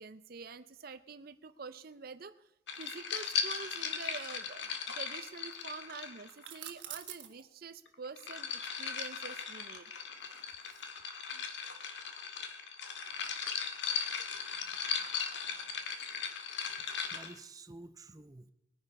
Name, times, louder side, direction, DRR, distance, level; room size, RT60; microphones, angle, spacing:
voice 1, 0.0-2.5 2.8-9.9 10.7-10.8 11.3-11.4 14.9-15.0, right 5 dB, 55° right, 13 dB, 0.6 m, -47 dB
water and ice in a glass cup stirred with straw, 2.7-6.6 7.9-17.3, left 6 dB, 80° left, 1.8 m, -38 dB
sound 1, 6.3-7.4 9.2-10.8, right 11 dB, 80° right, 1.7 m, -47 dB
voice 2, 16.7-18.5, right 2 dB, 20° right, 9 dB, 0.7 m, -51 dB
20.5 x 9.9 x 5.4 m, 0.86 s
head